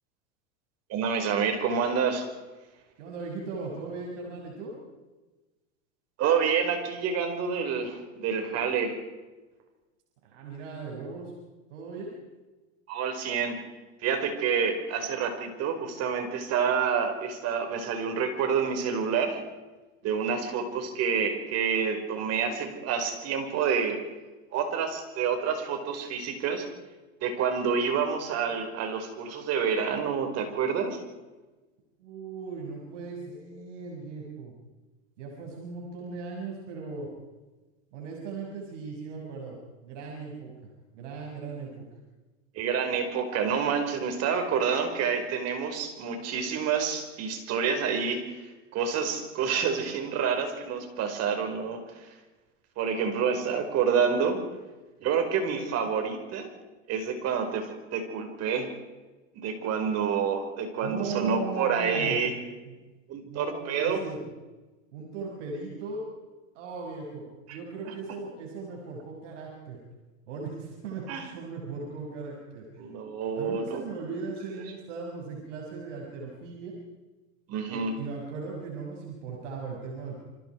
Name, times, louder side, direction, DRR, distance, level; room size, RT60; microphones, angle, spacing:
voice 1, 0.9-2.3 6.2-9.0 12.9-13.6 14.0-19.4 20.0-24.0 24.5-26.7 27.2-31.0 42.6-52.1 52.8-54.4 55.0-56.5 56.9-58.7 59.3-62.3 63.1-64.0 67.5-67.6 67.8-67.9 71.1-71.3 72.8-73.8 77.5-77.9, right 6 dB, 45° right, 5 dB, 5.2 m, -28 dB
voice 2, 3.0-4.7 10.2-11.3 11.7-12.1 32.0-34.5 35.2-37.1 37.9-39.6 39.8-40.5 40.9-41.9 60.8-62.2 62.7-62.8 63.2-64.2 64.9-66.1 66.5-69.8 70.3-72.8 73.3-76.7 77.7-80.2, right 4 dB, 75° right, -1 dB, 6.4 m, -38 dB
28.5 x 25.0 x 4.8 m, 1.2 s
supercardioid pair, 125°, 36 cm